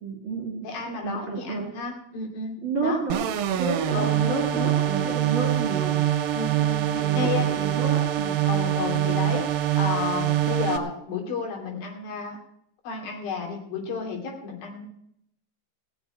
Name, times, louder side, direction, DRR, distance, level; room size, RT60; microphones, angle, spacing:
voice 1, 0.0-0.7 1.0-1.6 2.6-3.2 3.5-6.0 6.9-8.4, right 3 dB, 40° right, 0 dB, 2.5 m, -30 dB
voice 2, 0.6-3.0 3.9-4.7 6.3-6.9 7.1-7.6 8.5-12.4 12.8-14.9, left 4 dB, 65° left, 1 dB, 4.2 m, -32 dB
sound 1, 3.1-10.8, right 12 dB, 75° right, 2.6 m, -24 dB
15.5 x 6.7 x 9.7 m, 0.74 s
omnidirectional pair, 4.5 m